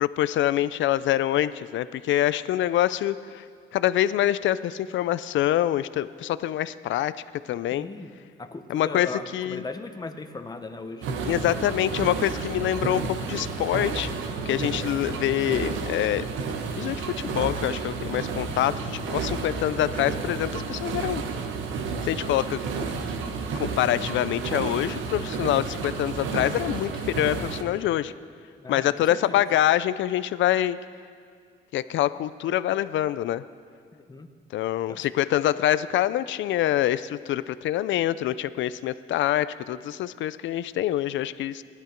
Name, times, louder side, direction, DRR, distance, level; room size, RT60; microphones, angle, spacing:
voice 1, 0.0-3.4 3.7-7.1 7.5-7.9 8.7-9.1 9.3-9.6 11.2-14.1 14.5-16.3 16.8-21.2 22.0-22.9 23.6-28.1 28.7-30.8 31.7-33.4 34.5-41.6, left 13 dB, 70° left, 15 dB, 0.5 m, -25 dB
voice 2, 7.7-8.1 8.4-11.1 19.4-19.5 28.6-29.5 33.9-34.3 34.9-35.1, left 3 dB, 20° left, 7 dB, 1.0 m, -38 dB
sound 1, 11.0-27.6, right 5 dB, 85° right, 1.1 m, -31 dB
16.0 x 11.0 x 4.5 m, 2.1 s
cardioid pair, 90°, 20 cm